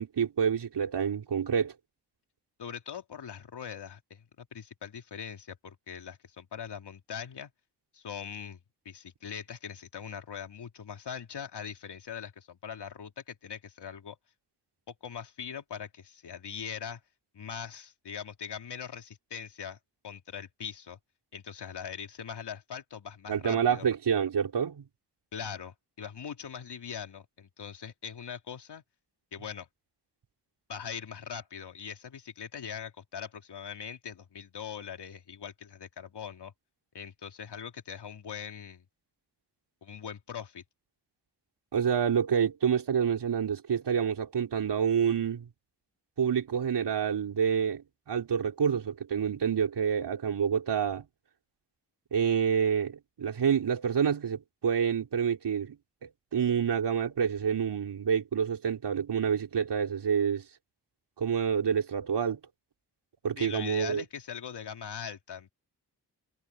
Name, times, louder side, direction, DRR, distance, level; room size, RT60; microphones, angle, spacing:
voice 1, 0.0-1.7 23.3-24.8 41.7-45.5 46.2-51.1 52.1-55.8 56.0-60.4 61.2-62.4 63.2-64.0, right 7 dB, 75° right, 4.2 m, -28 dB
voice 2, 2.6-7.5 7.9-8.6 8.8-14.2 14.9-17.0 17.3-19.8 20.0-21.0 21.3-23.9 25.3-28.8 29.3-29.7 30.7-36.5 36.9-38.8 39.8-40.6 63.4-65.5, left 7 dB, 75° left, 3.2 m, -41 dB
cardioid pair, 65°, 41 cm